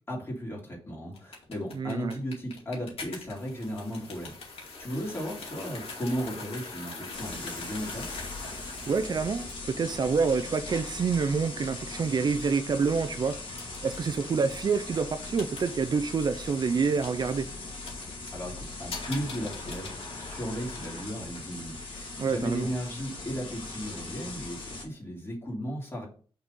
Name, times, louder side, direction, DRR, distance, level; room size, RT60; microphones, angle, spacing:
voice 1, 0.1-8.1 18.3-26.1, equal, 25° left, 2.9 m, -35 dB
sound 1, 1.1-21.1, left 3 dB, 80° left, 2.3 m, -44 dB
voice 2, 1.7-2.1 8.9-17.5 22.2-22.7, right 5 dB, 45° right, 0.5 m, -27 dB
sound 2, 7.1-24.8, left 3 dB, 65° left, 2.4 m, -40 dB
6.0 x 4.2 x 5.3 m
wide cardioid pair, 145°, 10 cm